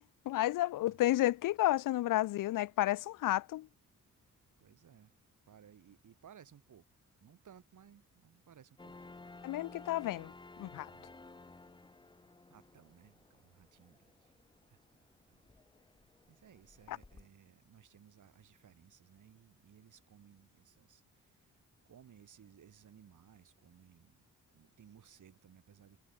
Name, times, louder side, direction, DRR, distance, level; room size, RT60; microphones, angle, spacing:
voice 1, 0.0-3.7 9.4-10.3 10.6-10.9 16.9-17.0, left 15 dB, 75° left, 0.5 m, -31 dB
voice 2, 4.6-5.1 5.5-6.8 7.2-9.2 10.9-11.1 12.5-14.3 14.7-14.8 15.3-15.4 16.3-24.2 24.5-26.0, right 8 dB, 65° right, 3.1 m, -60 dB
sound 1, 8.8-17.3, left 3 dB, 15° left, 0.8 m, -56 dB
cardioid pair, 75°, 32 cm